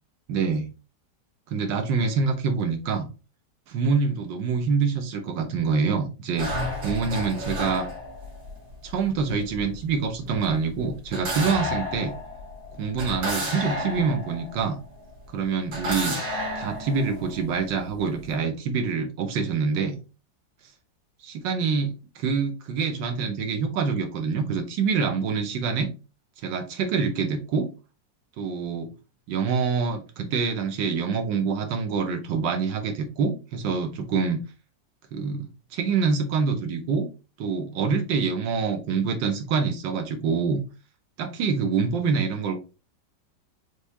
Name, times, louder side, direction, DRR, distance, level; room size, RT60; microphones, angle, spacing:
voice 1, 0.3-0.6 1.5-3.1 3.7-6.5 6.8-7.9 8.8-12.1 12.8-14.8 15.3-16.2 16.6-20.0 21.2-25.9 26.4-27.7 28.4-28.9 29.3-34.4 35.1-37.1 37.4-40.6 41.2-42.6, right 5 dB, 85° right, 6 dB, 1.6 m, -26 dB
sound 1, 6.4-15.2 15.7-18.3, left 1 dB, 65° right, 2.2 m, -32 dB
4.7 x 3.5 x 2.7 m, 0.31 s
omnidirectional pair, 2.0 m